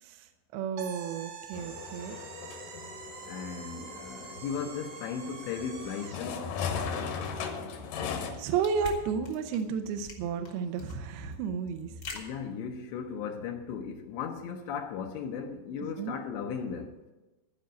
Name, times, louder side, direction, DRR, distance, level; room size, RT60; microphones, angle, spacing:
voice 1, 0.0-2.2 8.4-12.0 16.0-16.2, right 6 dB, 75° right, 2.5 m, -32 dB
sound 1, 0.8-6.3, right 7 dB, 60° right, 2.3 m, -45 dB
sound 2, 1.5-8.3, left 6 dB, 65° left, 2.3 m, -38 dB
voice 2, 3.3-6.5 12.1-17.0, left 6 dB, 85° left, 3.0 m, -36 dB
sound 3, 8.0-13.2, left 3 dB, 50° left, 1.1 m, -45 dB
14.5 x 5.2 x 9.2 m
omnidirectional pair, 5.1 m